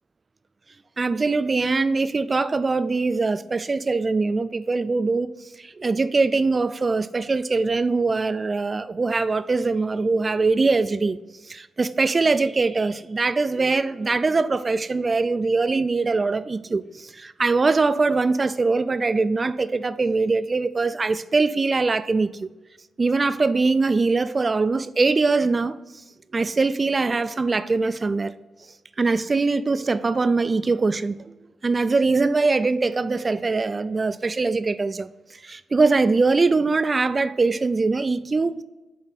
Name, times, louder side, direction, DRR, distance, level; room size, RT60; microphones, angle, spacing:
voice 1, 1.0-5.3 5.6-11.2 11.5-22.5 23.0-25.8 26.3-28.3 29.0-31.3 31.6-35.1 35.4-38.6, right 3 dB, 40° right, 0.4 m, -22 dB
7.3 x 4.3 x 4.1 m
supercardioid pair, 45°, 0 cm